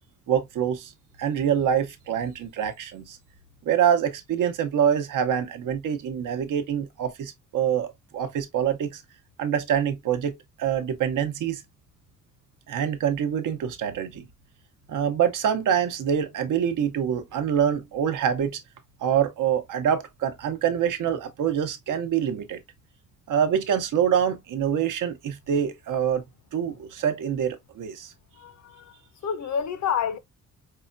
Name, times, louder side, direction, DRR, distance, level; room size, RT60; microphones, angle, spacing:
voice 1, 0.3-0.9 1.2-3.2 3.6-9.0 9.4-11.6 12.7-14.3 14.9-18.6 19.0-22.6 23.3-26.2 26.5-28.1, right 8 dB, 85° right, 0.8 m, -25 dB
voice 2, 28.4-28.8 29.2-30.2, left 7 dB, 65° left, 0.6 m, -28 dB
4.7 x 2.2 x 2.4 m
wide cardioid pair, 145°, 31 cm